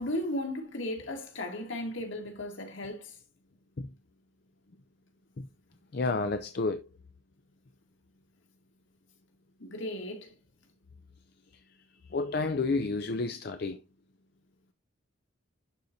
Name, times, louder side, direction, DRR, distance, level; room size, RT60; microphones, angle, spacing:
voice 1, 0.0-3.2 9.6-10.3, left 1 dB, 70° left, 1.8 m, -35 dB
voice 2, 5.9-6.8 12.1-13.8, left 3 dB, 50° left, 0.5 m, -30 dB
11.5 x 4.0 x 2.8 m
head